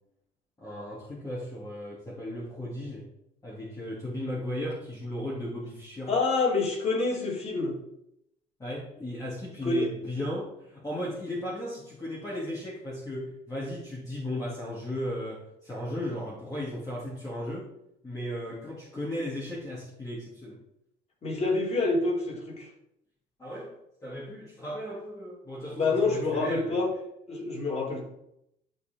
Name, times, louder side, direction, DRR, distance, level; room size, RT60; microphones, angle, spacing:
voice 1, 0.6-3.1 3.4-6.1 8.6-17.7 18.0-20.6 23.4-23.8 24.0-26.8, left 1 dB, 20° left, -7 dB, 3.1 m, -36 dB
voice 2, 6.1-7.8 9.6-9.9 21.2-22.7 25.8-26.9 27.3-28.2, left 3 dB, 40° left, -3 dB, 3.9 m, -27 dB
12.5 x 4.8 x 4.7 m, 0.78 s
cardioid pair, 110°, 17 cm